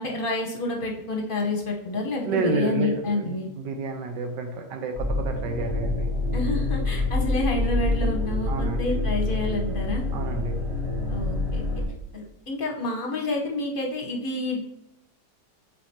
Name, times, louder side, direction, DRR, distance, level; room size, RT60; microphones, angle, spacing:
voice 1, 0.0-3.5 6.3-10.0 11.1-11.6 12.1-14.6, left 2 dB, 40° left, 0 dB, 0.9 m, -29 dB
voice 2, 2.2-6.1 8.5-8.9 10.1-10.6, right 3 dB, 85° right, 4 dB, 1.4 m, -30 dB
sound 1, 5.0-11.8, left 2 dB, 45° right, 2.2 m, -26 dB
8.2 x 4.4 x 2.8 m, 0.89 s
omnidirectional pair, 1.8 m